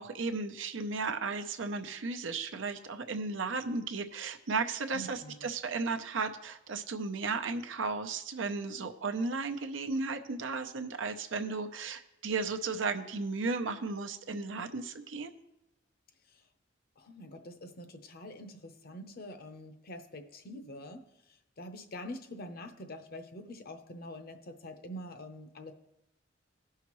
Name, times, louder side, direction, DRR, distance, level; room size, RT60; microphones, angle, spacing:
voice 1, 0.0-15.3, right 4 dB, 85° right, 7 dB, 0.7 m, -35 dB
voice 2, 4.9-5.5 17.0-21.1 21.6-25.7, left 1 dB, 55° left, 8 dB, 0.8 m, -45 dB
17.0 x 5.7 x 3.1 m, 0.91 s
head